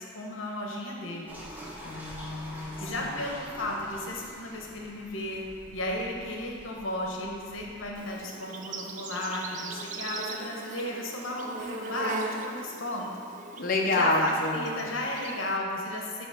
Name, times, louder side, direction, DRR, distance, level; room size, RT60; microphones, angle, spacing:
voice 1, 0.0-1.4 2.8-5.4 5.7-13.1 13.9-16.3, left 1 dB, 70° left, -1 dB, 1.0 m, -34 dB
sound 1, 1.3-8.1, equal, 10° right, 0.8 m, -46 dB
voice 2, 1.8-3.2 13.6-14.9, left 2 dB, 45° left, -2 dB, 0.7 m, -28 dB
Insect, 7.9-15.6, right 3 dB, 40° right, 0.4 m, -39 dB
8.9 x 3.1 x 4.9 m, 2.1 s
head